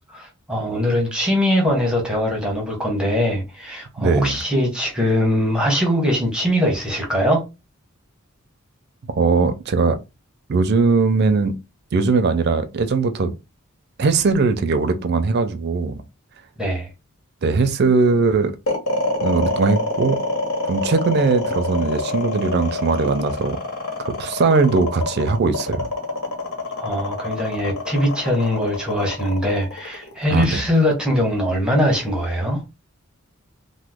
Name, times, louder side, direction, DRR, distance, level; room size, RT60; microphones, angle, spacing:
voice 1, 0.1-7.4 16.6-16.9 26.8-32.6, equal, 5° right, 0.9 m, -21 dB
voice 2, 4.0-4.4 9.1-10.0 10.5-11.5 11.9-13.3 14.0-16.0 17.4-18.5 19.2-20.2 20.6-23.6 24.2-25.9 30.3-30.6, right 4 dB, 50° right, 0.4 m, -19 dB
sound 1, 18.7-30.9, left 2 dB, 90° left, 1.1 m, -26 dB
2.9 x 2.1 x 3.4 m
head